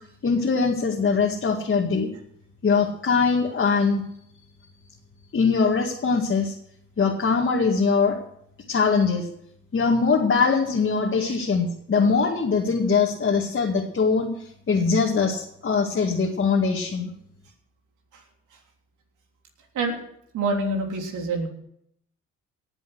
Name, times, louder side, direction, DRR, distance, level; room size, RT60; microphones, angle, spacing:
voice 1, 0.2-2.1 2.6-4.0 5.3-6.6 7.0-8.2 8.7-9.3 9.7-14.3 14.7-17.1, left 5 dB, 40° left, -2 dB, 2.1 m, -22 dB
voice 2, 20.3-21.5, right 2 dB, 75° right, 2 dB, 3.4 m, -26 dB
18.0 x 7.7 x 6.3 m, 0.72 s
cardioid pair, 90°, 30 cm